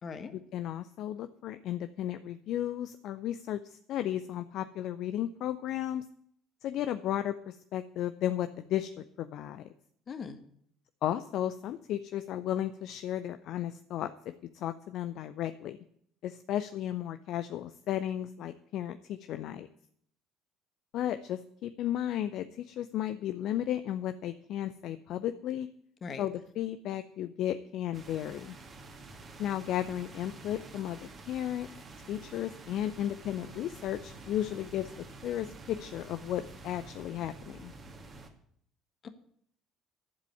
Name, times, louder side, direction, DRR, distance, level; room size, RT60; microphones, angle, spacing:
voice 1, 0.0-0.3 10.1-10.4 26.0-26.3 39.0-39.1, left 5 dB, 40° left, 9 dB, 1.5 m, -40 dB
voice 2, 0.5-6.0 6.6-9.7 11.0-14.1 14.5-15.8 16.2-19.7 20.9-25.7 26.2-28.6 29.4-31.0 31.3-31.7 32.1-34.9 35.2-37.7, left 11 dB, 55° left, 11 dB, 0.5 m, -34 dB
sound 1, 27.9-38.3, right 3 dB, 35° right, 2.2 m, -49 dB
11.5 x 7.5 x 8.5 m, 0.67 s
figure-of-eight pair, 55°, 0 cm